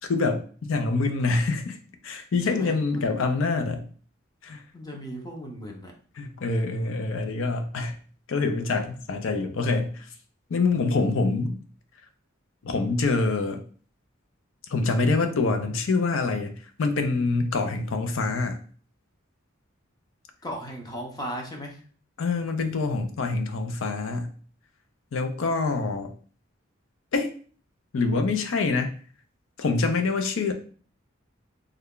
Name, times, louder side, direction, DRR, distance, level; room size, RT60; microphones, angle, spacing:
voice 1, 0.1-1.8 2.0-3.8 4.4-4.6 6.2-8.0 8.3-10.1 10.5-11.6 12.6-13.6 14.7-16.5 16.8-18.6 22.2-24.3 25.1-26.1 27.1-27.3 27.9-28.9 29.6-30.5, left 3 dB, 70° left, 6 dB, 0.5 m, -25 dB
voice 2, 2.5-3.1 4.7-5.9 20.4-21.8, equal, 20° left, 1 dB, 0.7 m, -36 dB
3.2 x 2.2 x 3.7 m, 0.43 s
head